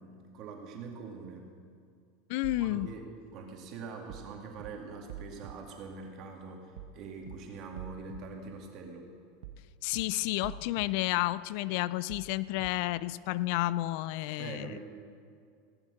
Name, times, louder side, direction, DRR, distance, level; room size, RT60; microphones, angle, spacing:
voice 1, 0.0-1.5 2.6-3.1 3.3-9.1 14.4-14.8, right 4 dB, 50° right, 2 dB, 2.4 m, -44 dB
voice 2, 2.3-2.9 9.8-14.7, left 17 dB, 65° left, 18 dB, 0.3 m, -31 dB
sound 1, 2.4-2.9 4.1-4.3 4.6-4.7 5.1-5.5 6.8-7.0 7.3-7.4 7.8-8.2 9.4-9.6 9.9-10.0 10.4-10.9 12.1-12.3 12.6-12.7, right 9 dB, 75° right, 0.8 m, -44 dB
17.5 x 7.3 x 6.5 m, 2.3 s
supercardioid pair, 120°, 0 cm